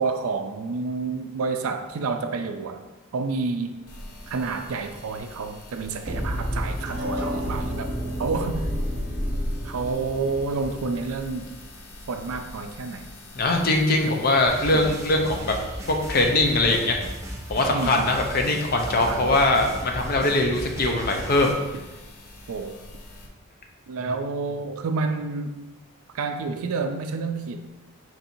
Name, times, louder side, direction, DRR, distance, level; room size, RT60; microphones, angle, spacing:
voice 1, 0.0-2.8 3.1-3.8 4.3-7.9 8.2-8.7 9.6-11.5 12.1-13.1 14.1-14.2 14.7-15.0 17.7-18.1 18.9-19.6 22.5-22.7 23.9-25.6 26.1-27.7, right 4 dB, 75° right, 7 dB, 0.4 m, -29 dB
sound 1, 3.9-23.3, left 1 dB, 85° left, 0.8 m, -40 dB
sound 2, 6.0-12.0, equal, 50° right, 0.8 m, -31 dB
voice 2, 13.4-15.5 15.9-17.0 17.5-21.6, left 2 dB, 40° left, 2 dB, 0.5 m, -22 dB
sound 3, 14.5-21.5, equal, 15° right, 0.4 m, -36 dB
4.5 x 4.3 x 2.7 m, 1.1 s
head